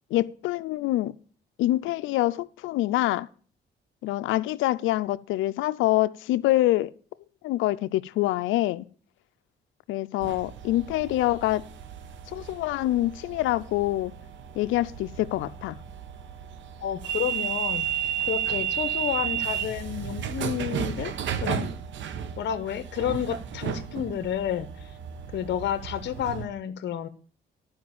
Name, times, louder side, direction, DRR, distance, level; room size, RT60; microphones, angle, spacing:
voice 1, 0.1-1.1 1.6-3.3 4.0-6.9 7.4-8.9 9.9-11.6 12.3-14.1 14.6-15.8, left 16 dB, 90° left, 0.5 m, -25 dB
sound 1, 10.2-26.5, right 9 dB, 70° right, 1.0 m, -33 dB
voice 2, 16.8-21.1 21.4-21.7 22.4-24.9 25.3-27.1, left 9 dB, 65° left, 0.8 m, -30 dB
11.0 x 5.1 x 7.1 m
cardioid pair, 90°, 20 cm